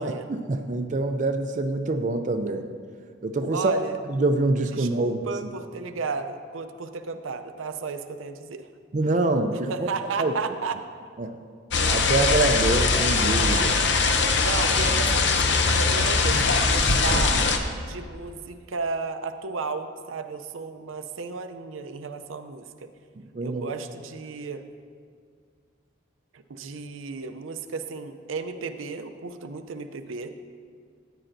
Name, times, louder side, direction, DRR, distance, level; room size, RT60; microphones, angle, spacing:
voice 1, 0.0-2.7 3.2-3.7 4.1-5.2 8.9-9.9 10.2-10.3 11.2-11.4 11.9-13.8 23.3-23.7, right 2 dB, 40° right, 6 dB, 0.4 m, -25 dB
voice 2, 3.5-4.0 4.8-8.7 9.7-10.8 14.4-17.4 17.9-22.9 23.4-24.6 26.3-30.3, right 4 dB, 90° right, 8 dB, 0.5 m, -33 dB
sound 1, 11.7-17.6, left 4 dB, 60° left, 0.6 m, -21 dB
14.0 x 8.9 x 2.6 m, 2.1 s
head